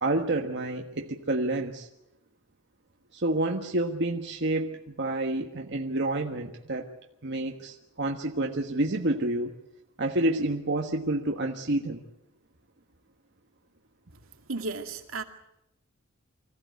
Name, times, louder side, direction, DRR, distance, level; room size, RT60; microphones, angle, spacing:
voice 1, 0.0-1.9 3.1-6.9 7.2-9.5 10.0-12.0, right 2 dB, 55° right, 2 dB, 1.5 m, -29 dB
voice 2, 14.5-15.2, right 3 dB, 80° right, 5 dB, 2.2 m, -33 dB
25.0 x 15.5 x 9.4 m, 0.86 s
head